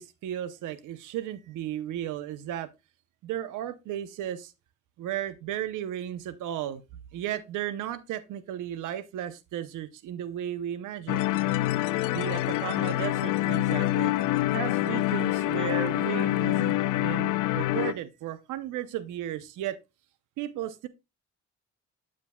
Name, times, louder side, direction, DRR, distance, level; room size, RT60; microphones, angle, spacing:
voice 1, 0.0-2.7 3.2-4.5 5.0-6.8 7.1-11.3 12.1-14.1 14.5-19.8 20.4-20.9, right 11 dB, 85° right, 0.8 m, -34 dB
sound 1, 11.1-17.9, left 15 dB, 85° left, 0.5 m, -26 dB
8.4 x 7.4 x 2.2 m
cardioid pair, 90°, 30 cm